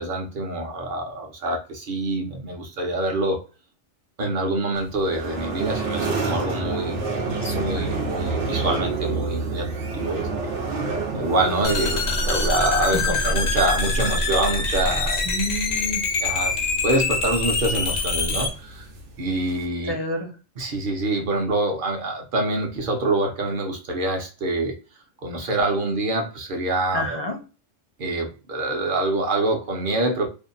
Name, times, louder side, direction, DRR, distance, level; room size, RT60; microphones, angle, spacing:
voice 1, 0.0-3.4 4.2-7.0 7.3-10.5 11.1-15.2 16.2-16.6 16.8-18.9 19.2-20.0 20.6-24.7 25.2-27.2 28.0-30.3, right 2 dB, 55° right, 2 dB, 0.8 m, -25 dB
sound 1, 4.8-19.7, right 4 dB, 90° right, 1.0 m, -30 dB
voice 2, 7.4-7.9 12.9-13.0 15.3-16.0 19.9-20.3 26.9-27.4, left 1 dB, 35° left, 2 dB, 0.4 m, -29 dB
sound 2, 11.6-18.5, left 3 dB, 85° left, 1.0 m, -24 dB
2.7 x 2.1 x 2.5 m, 0.33 s
omnidirectional pair, 1.2 m